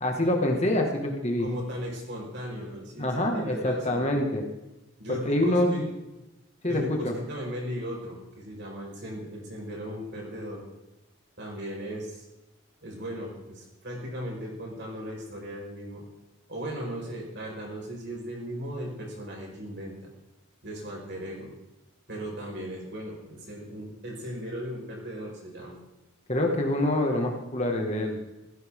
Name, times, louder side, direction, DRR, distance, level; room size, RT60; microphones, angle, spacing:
voice 1, 0.0-1.5 3.0-4.4 5.1-5.9 6.6-7.1 26.3-28.2, left 1 dB, 30° left, 1 dB, 2.1 m, -26 dB
voice 2, 1.4-4.1 5.0-5.9 6.7-10.6 11.4-12.2 12.8-16.0 16.5-20.1 20.6-21.5 22.1-25.8, equal, 55° right, -1 dB, 5.3 m, -37 dB
16.0 x 16.0 x 3.9 m, 0.99 s
head